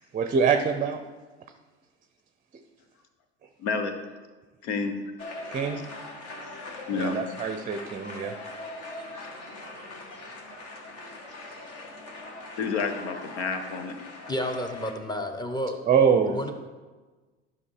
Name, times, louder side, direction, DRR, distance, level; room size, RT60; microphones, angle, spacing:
voice 1, 0.1-1.0 5.5-5.8 6.9-8.4 9.6-9.9 15.9-16.4, right 6 dB, 25° right, 7 dB, 0.6 m, -24 dB
voice 2, 3.6-3.9 4.6-4.9 6.9-7.2 12.6-13.9, left 4 dB, 70° left, 7 dB, 1.2 m, -29 dB
sound 1, 5.2-14.9, left 2 dB, 45° left, 1.7 m, -41 dB
voice 3, 14.3-15.8 16.3-16.5, equal, 10° left, 6 dB, 1.0 m, -30 dB
11.0 x 5.4 x 4.8 m, 1.3 s
hypercardioid pair, 75°, 35 cm